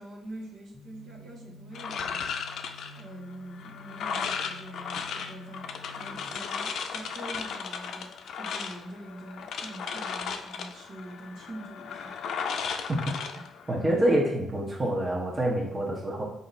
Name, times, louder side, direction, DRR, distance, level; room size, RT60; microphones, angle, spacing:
voice 1, 0.0-2.3 2.9-12.2, right 1 dB, 65° right, -2 dB, 1.3 m, -44 dB
sound 1, 0.7-6.3, left 2 dB, 20° left, 0.7 m, -50 dB
sound 2, 1.7-14.1, left 6 dB, 70° left, 0.4 m, -35 dB
voice 2, 13.7-16.2, right 1 dB, 25° right, -2 dB, 1.0 m, -26 dB
4.2 x 2.7 x 4.0 m, 0.86 s
cardioid pair, 90°, 0 cm